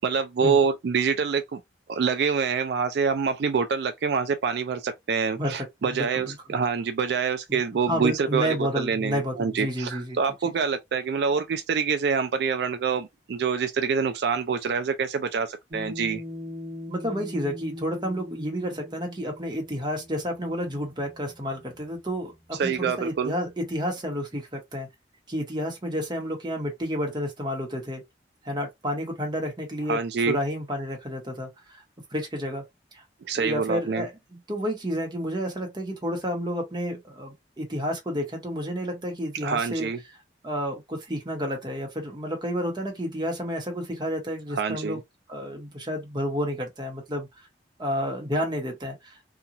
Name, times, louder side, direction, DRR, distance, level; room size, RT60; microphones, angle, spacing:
voice 1, 0.0-1.6 1.9-16.2 22.6-23.3 29.9-30.4 33.2-34.1 39.4-40.0 44.5-45.0, right 5 dB, 65° right, 0.3 m, -26 dB
voice 2, 5.8-6.3 7.5-7.6 7.9-10.2 16.9-24.9 25.3-28.0 28.4-30.0 30.3-31.5 32.1-32.6 32.9-33.0 33.4-39.9 40.4-45.0 45.3-47.5 47.8-49.2, equal, 25° right, 0.9 m, -30 dB
sound 1, 15.7-22.4, left 1 dB, 45° right, 1.1 m, -41 dB
2.9 x 2.3 x 2.5 m
head